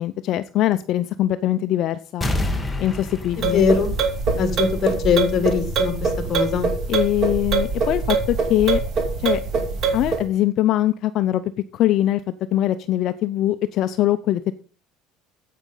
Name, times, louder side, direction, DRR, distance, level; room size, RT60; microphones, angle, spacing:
voice 1, 0.0-2.3 2.8-3.7 6.9-8.8 9.2-9.4 9.9-11.4 11.7-14.5, left 13 dB, 55° left, 11 dB, 0.5 m, -22 dB
sound 1, 2.2-4.8 5.2-5.3, left 1 dB, 10° left, 1.3 m, -28 dB
sound 2, 3.3-10.2, right 4 dB, 45° right, 2.5 m, -23 dB
voice 2, 3.4-3.9 4.4-6.7, left 6 dB, 40° left, 8 dB, 2.5 m, -21 dB
8.8 x 8.4 x 5.4 m, 0.39 s
cardioid pair, 135°, 0 cm